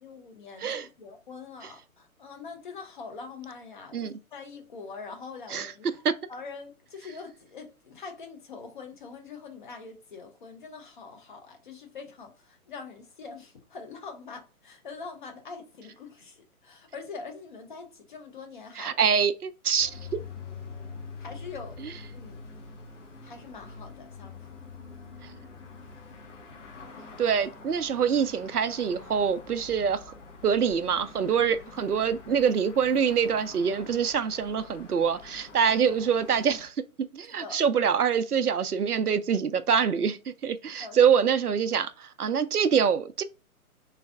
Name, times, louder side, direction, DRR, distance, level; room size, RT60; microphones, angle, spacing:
voice 1, 0.0-5.9 6.3-19.0 21.2-21.8 22.1-22.4 23.2-24.5 37.3-37.6 40.8-41.0, left 4 dB, 35° left, 0.7 m, -43 dB
voice 2, 18.8-20.2 27.2-30.0 30.4-36.7 37.1-43.2, right 7 dB, 90° right, 0.5 m, -25 dB
sound 1, 19.8-36.7, left 4 dB, 55° left, 1.0 m, -45 dB
3.2 x 2.5 x 3.4 m
figure-of-eight pair, 130°, 44 cm